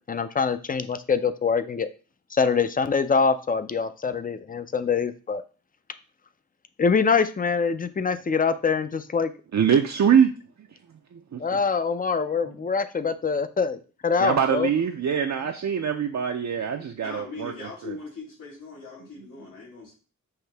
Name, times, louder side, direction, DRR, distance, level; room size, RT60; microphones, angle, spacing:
voice 1, 0.1-1.9 2.3-5.4 6.8-9.3 11.4-14.7, left 5 dB, 30° left, 12 dB, 0.4 m, -24 dB
voice 2, 9.5-10.3 11.1-11.4 14.2-17.5 17.8-18.0, right 7 dB, 60° right, 4 dB, 0.5 m, -23 dB
voice 3, 17.0-19.9, left 3 dB, 85° left, -5 dB, 2.4 m, -40 dB
5.7 x 2.7 x 3.3 m, 0.35 s
wide cardioid pair, 95°, 31 cm